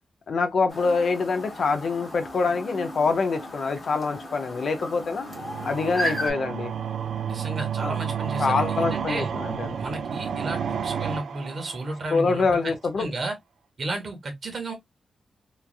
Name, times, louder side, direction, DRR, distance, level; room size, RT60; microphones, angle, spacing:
voice 1, 0.3-5.3 5.6-6.7 7.8-8.0 8.4-9.8 12.1-13.1, left 4 dB, 55° left, 0.5 m, -25 dB
Chirp tweet, 0.7-6.3, equal, 30° left, 1.4 m, -35 dB
sound 1, 5.3-12.3, right 8 dB, 70° right, 0.3 m, -31 dB
voice 2, 7.2-9.3 9.7-13.4 13.8-14.7, right 2 dB, 45° right, 1.0 m, -33 dB
3.2 x 2.3 x 2.3 m
wide cardioid pair, 165°, 0 cm